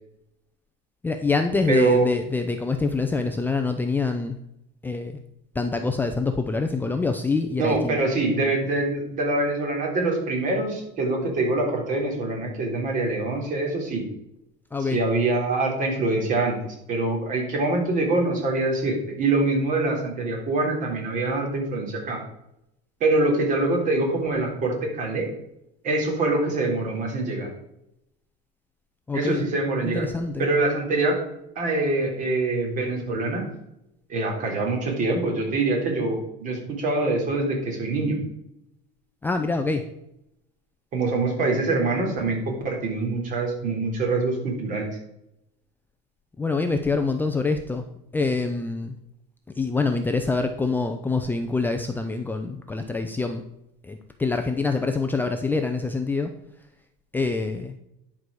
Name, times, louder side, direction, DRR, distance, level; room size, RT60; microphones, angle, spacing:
voice 1, 1.0-4.4 4.8-5.2 5.5-8.0 14.7-15.0 29.1-29.4 29.8-30.5 39.2-39.8 46.4-47.8 48.1-48.9 49.5-53.4 53.8-56.3 57.1-57.7, left 3 dB, 10° left, 5 dB, 0.5 m, -25 dB
voice 2, 1.7-2.1 7.6-14.0 14.8-22.2 23.0-25.3 25.8-27.5 29.1-30.0 30.4-31.2 31.5-33.4 34.1-38.2 40.9-44.9, right 2 dB, 40° right, 1 dB, 3.3 m, -24 dB
10.5 x 4.8 x 6.3 m, 0.83 s
cardioid pair, 140°, 21 cm